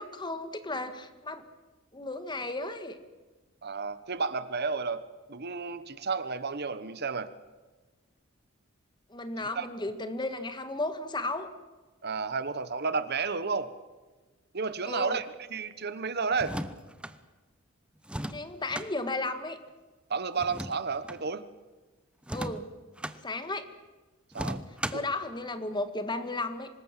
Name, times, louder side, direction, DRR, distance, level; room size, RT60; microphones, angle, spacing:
voice 1, 0.0-1.4 1.9-3.0 9.1-11.5 14.8-15.2 18.3-19.6 22.3-22.7 23.2-23.7 24.9-26.7, left 2 dB, 20° left, 10 dB, 1.7 m, -34 dB
voice 2, 3.6-5.0 5.3-7.3 9.5-9.7 12.0-13.7 14.5-15.3 15.5-16.6 20.1-21.4 24.3-24.6 24.9-25.0, right 4 dB, 55° right, 13 dB, 1.2 m, -31 dB
sound 1, 16.3-17.2 18.0-18.9 20.4-21.2 22.2-23.2 24.3-25.1, right 1 dB, 5° right, 0.9 m, -37 dB
25.5 x 20.0 x 7.5 m, 1.3 s
head